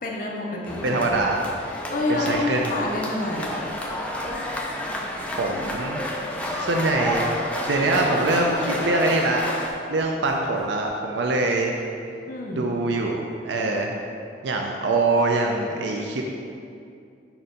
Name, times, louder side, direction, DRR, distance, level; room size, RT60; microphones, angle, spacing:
voice 1, 0.0-1.1 1.7-3.7 12.3-12.7, left 2 dB, 45° left, -1 dB, 0.7 m, -28 dB
sound 1, 0.7-9.7, equal, 5° left, 0.4 m, -30 dB
voice 2, 0.8-1.4 2.1-2.7 5.4-6.0 6.6-9.4 9.9-11.8 12.6-14.0 14.4-16.2, right 2 dB, 75° right, 1 dB, 0.5 m, -24 dB
sound 2, 6.1-9.7 10.0-10.3 10.6-10.7 10.9-11.0, right 1 dB, 45° right, 1.4 m, -46 dB
4.6 x 4.2 x 5.1 m, 2.4 s
head